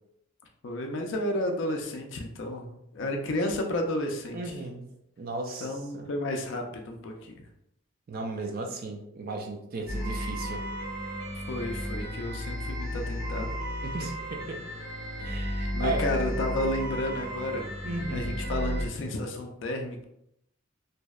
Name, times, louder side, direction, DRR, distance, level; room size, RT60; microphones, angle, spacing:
voice 1, 0.6-4.4 5.6-7.4 11.5-13.6 15.7-17.7 18.1-20.0, left 1 dB, 60° left, 2 dB, 0.4 m, -32 dB
voice 2, 4.3-4.9 5.2-6.1 8.1-10.6 13.8-14.6 15.2-16.1 17.8-18.4, right 3 dB, 45° right, 3 dB, 0.3 m, -35 dB
sound 1, 9.9-18.8, equal, 80° right, 1.2 m, -33 dB
2.6 x 2.0 x 2.3 m, 0.79 s
head